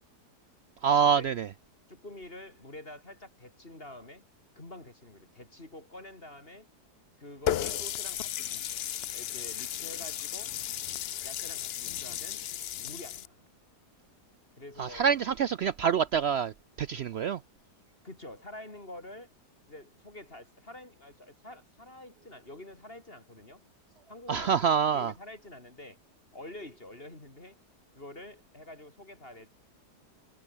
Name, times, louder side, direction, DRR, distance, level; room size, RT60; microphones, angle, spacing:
voice 1, 0.8-1.5 14.8-17.4 24.3-25.1, right 7 dB, 80° right, 0.5 m, -26 dB
voice 2, 1.9-4.2 4.6-6.7 7.2-8.6 9.1-10.6 11.2-12.4 12.8-13.4 14.6-15.1 18.0-19.3 19.7-23.6 24.1-26.0 26.3-27.6 28.0-29.5, left 1 dB, 35° left, 3.8 m, -47 dB
Water tap faucet, 7.5-13.3, left 11 dB, 70° left, 0.6 m, -35 dB
omnidirectional pair, 1.7 m